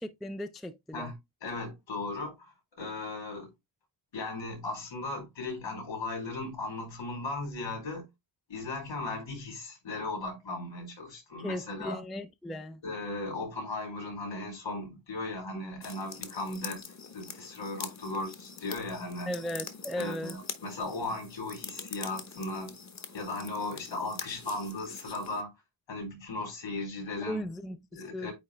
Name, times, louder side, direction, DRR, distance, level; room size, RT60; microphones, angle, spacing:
voice 1, 0.0-1.1 11.4-12.8 19.3-20.4 27.2-28.3, left 1 dB, ahead, 0.3 m, -37 dB
voice 2, 0.9-3.5 4.1-8.1 8.5-12.0 12.8-19.4 20.0-22.7 23.1-25.5 25.9-27.4 27.9-28.3, left 2 dB, 65° left, 4.4 m, -37 dB
sound 1, 15.8-25.4, left 5 dB, 35° left, 1.1 m, -44 dB
9.1 x 3.2 x 3.3 m
wide cardioid pair, 140°, 48 cm